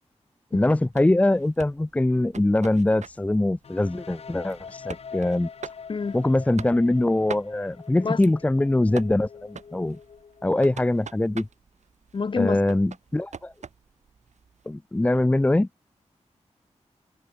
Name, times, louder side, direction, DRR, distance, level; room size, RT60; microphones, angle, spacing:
voice 1, 0.5-5.5 6.1-10.0 10.4-11.5 12.4-13.5 14.7-15.7, left 1 dB, 10° left, 0.6 m, -23 dB
sound 1, 0.9-14.7, right 6 dB, 80° right, 5.0 m, -45 dB
sound 2, 3.6-11.4, left 6 dB, 60° left, 0.9 m, -44 dB
voice 2, 12.1-12.6, left 5 dB, 45° left, 1.2 m, -27 dB
wide cardioid pair, 170°, 12 cm